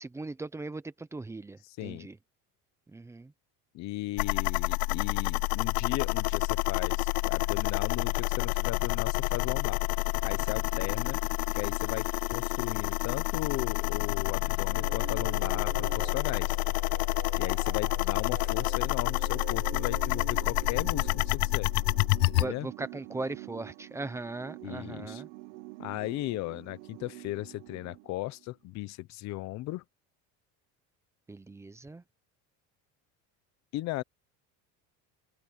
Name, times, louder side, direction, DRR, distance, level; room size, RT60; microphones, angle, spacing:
voice 1, 0.0-2.2 2.9-3.3 22.4-25.3 31.3-32.0, right 2 dB, 5° right, 0.7 m, -39 dB
voice 2, 1.6-2.1 3.7-9.8 10.2-11.2 11.5-16.6 17.4-21.7 22.3-22.7 24.6-25.2 25.8-29.8 33.7-34.0, left 18 dB, 45° left, 0.8 m, -36 dB
sound 1, 4.2-22.5, left 27 dB, 70° left, 0.5 m, -29 dB
sound 2, 14.7-28.4, right 21 dB, 75° right, 1.2 m, -45 dB
open air
cardioid pair, 170°, 39 cm